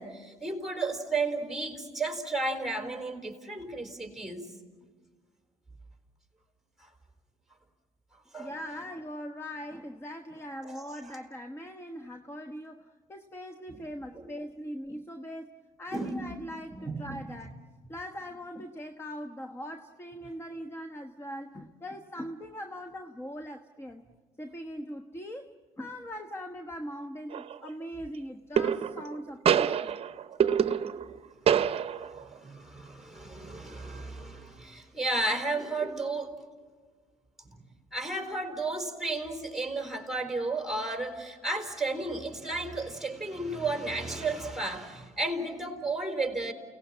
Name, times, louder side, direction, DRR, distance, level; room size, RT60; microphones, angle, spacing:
voice 1, 0.0-4.5 6.8-6.9 8.3-8.5 10.6-11.2 13.7-13.8 14.1-14.3 15.9-16.2 16.7-17.2 31.7-36.3 37.5-37.6 37.9-46.5, right 2 dB, ahead, 3 dB, 4.2 m, -33 dB
voice 2, 8.4-17.6 17.9-24.1 24.4-30.0, equal, 15° left, 8 dB, 1.1 m, -41 dB
sound 1, 27.3-27.7 28.6-29.2 29.5-31.2 31.5-32.2, right 8 dB, 40° right, 0.9 m, -26 dB
29.5 x 18.5 x 7.5 m, 1.5 s
supercardioid pair, 85°, 15 cm